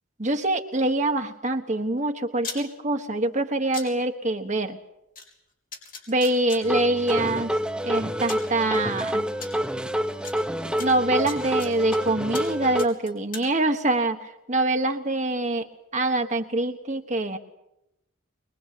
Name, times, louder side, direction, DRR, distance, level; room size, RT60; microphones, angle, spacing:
voice 1, 0.2-4.8 6.1-7.5 7.8-9.3 10.8-15.7 15.9-17.4, right 2 dB, 35° right, 6 dB, 1.2 m, -25 dB
sound 1, 2.4-2.6 3.7-3.9 5.2-5.3 5.7-6.6 7.7-7.8 8.3-8.5 9.4-9.5 10.2-10.3 10.8-12.0 12.3-12.5 12.8-13.5, left 5 dB, 40° left, 5.0 m, -37 dB
sound 2, 6.6-12.8, equal, 5° right, 0.9 m, -27 dB
23.0 x 23.0 x 8.4 m, 0.86 s
head